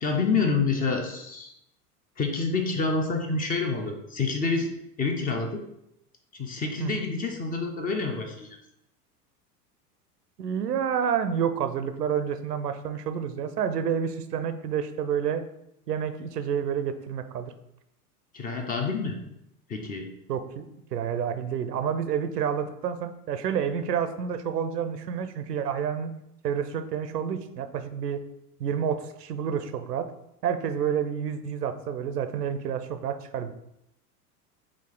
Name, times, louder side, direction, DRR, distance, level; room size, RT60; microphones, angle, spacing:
voice 1, 0.0-1.5 2.2-4.7 5.0-5.6 6.3-8.5 18.3-19.2 19.7-20.1, left 4 dB, 20° left, 4 dB, 0.5 m, -27 dB
voice 2, 10.4-15.4 15.9-17.5 20.3-20.7 20.9-26.1 26.4-28.2 28.6-30.1 30.4-33.5, right 8 dB, 85° right, 10 dB, 0.6 m, -29 dB
4.8 x 2.8 x 3.7 m, 0.81 s
figure-of-eight pair, 85°, 47 cm